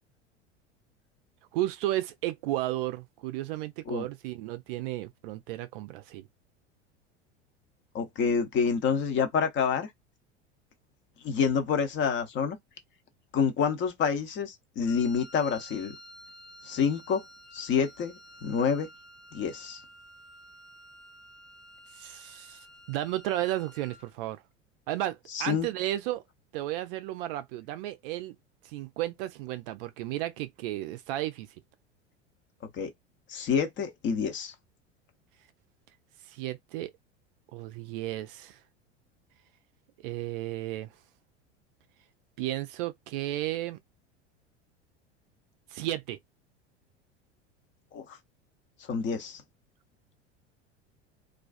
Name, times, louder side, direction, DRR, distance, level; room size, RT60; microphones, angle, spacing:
voice 1, 1.5-6.3 22.0-22.6 22.9-24.4 24.9-26.2 26.5-28.4 28.6-31.5 36.3-36.9 37.5-38.6 40.0-40.9 42.4-43.8 45.7-46.2, right 15 dB, 50° right, 0.5 m, -33 dB
voice 2, 7.9-9.9 11.2-12.6 13.3-15.9 16.6-17.2 17.5-18.9 19.3-19.8 25.3-25.7 32.7-32.9 33.3-34.5 47.9-48.2 48.9-49.4, left 6 dB, 35° left, 0.7 m, -28 dB
Wind instrument woodwind instrument, 14.8-24.1, left 1 dB, 65° left, 1.0 m, -52 dB
2.4 x 2.3 x 2.4 m
figure-of-eight pair, 80°, 35 cm